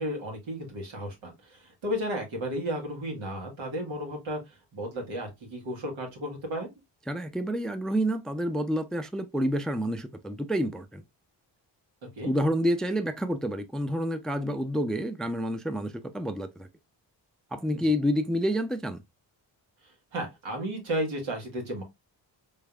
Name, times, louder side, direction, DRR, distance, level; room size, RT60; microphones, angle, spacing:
voice 1, 0.0-4.4 4.7-6.7 12.1-12.3 17.7-17.9 20.1-21.8, equal, 90° right, 1.5 m, -33 dB
voice 2, 7.1-11.0 12.2-16.7 17.5-19.0, equal, ahead, 0.3 m, -28 dB
3.6 x 3.3 x 2.2 m
cardioid pair, 55°, 45 cm